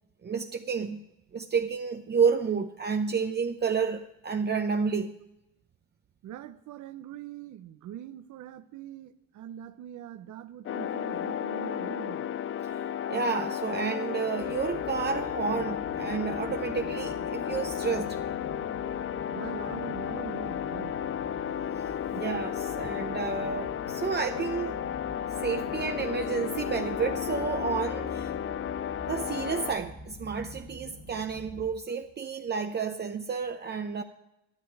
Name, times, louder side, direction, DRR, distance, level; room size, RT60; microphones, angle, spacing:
voice 1, 0.2-1.0 1.3-5.2 12.6-12.8 13.1-18.2 22.1-24.8 25.4-28.3 29.1-34.0, right 5 dB, 35° right, 0.7 m, -30 dB
voice 2, 6.2-12.3 19.3-21.0, right 11 dB, 75° right, 0.8 m, -43 dB
sound 1, 10.7-29.7, left 9 dB, 45° left, 0.4 m, -33 dB
sound 2, 14.4-31.7, left 1 dB, 85° left, 5.6 m, -46 dB
12.5 x 12.0 x 4.7 m
cardioid pair, 90°, 30 cm